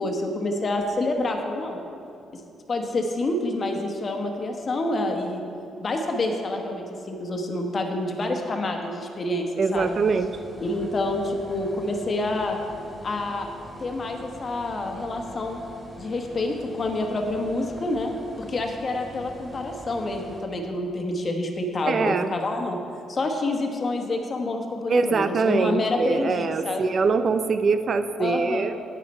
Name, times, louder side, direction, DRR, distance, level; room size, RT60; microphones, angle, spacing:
voice 1, 0.0-1.8 2.7-5.4 5.8-10.0 10.6-12.6 13.0-13.5 13.8-15.6 16.0-18.2 18.5-22.8 23.1-26.8 28.2-28.7, left 2 dB, 40° left, 3 dB, 1.3 m, -28 dB
voice 2, 9.6-10.3 21.9-22.3 24.9-28.8, right 4 dB, 50° right, 10 dB, 0.5 m, -23 dB
sound 1, 9.7-20.4, equal, 10° right, 2.3 m, -43 dB
9.7 x 8.9 x 4.4 m, 2.6 s
cardioid pair, 90°, 0 cm